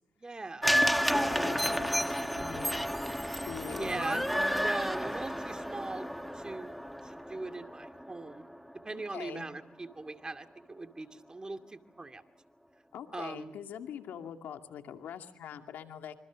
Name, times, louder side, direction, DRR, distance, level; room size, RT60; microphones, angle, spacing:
voice 1, 0.2-0.7 1.2-1.6 3.7-6.1 6.3-6.7 7.0-8.4 8.8-12.2 13.1-13.5, right 3 dB, 25° right, 7 dB, 2.4 m, -40 dB
sound 1, 0.6-8.9 9.2-9.3, equal, ahead, 1.5 m, -31 dB
voice 2, 1.1-2.8 3.5-4.3 8.9-9.5 12.9-16.2, left 8 dB, 75° left, 5 dB, 2.4 m, -43 dB
26.0 x 25.5 x 6.4 m, 0.89 s
supercardioid pair, 65°, 3 cm